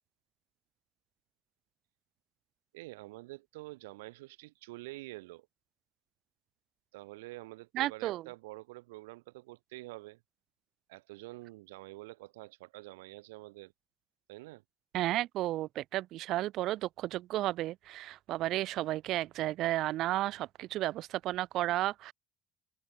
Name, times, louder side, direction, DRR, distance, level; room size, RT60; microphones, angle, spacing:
voice 1, 2.7-5.5 6.9-10.2 10.9-13.7 14.3-14.6, right 21 dB, 85° right, 6.8 m, -47 dB
voice 2, 7.7-8.2 14.9-22.1, right 15 dB, 70° right, 3.2 m, -33 dB
open air
hypercardioid pair, 65°, 0 cm